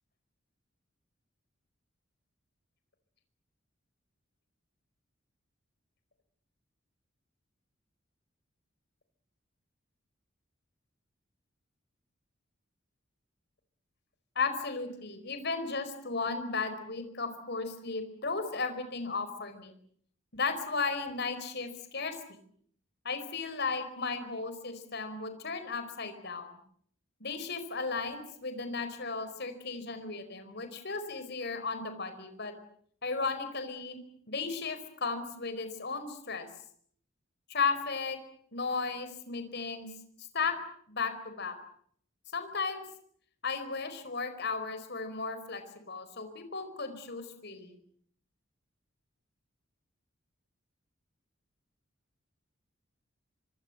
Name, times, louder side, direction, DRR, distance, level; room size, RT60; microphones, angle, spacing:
voice 1, 14.3-19.7 20.3-22.2 23.0-26.6 27.2-32.5 33.0-34.0 34.3-36.5 37.5-38.2 38.5-39.9 40.3-40.6 40.9-41.5 42.3-42.8 43.4-47.8, left 4 dB, 55° left, 9 dB, 4.8 m, -35 dB
25.5 x 25.0 x 7.9 m, 0.63 s
head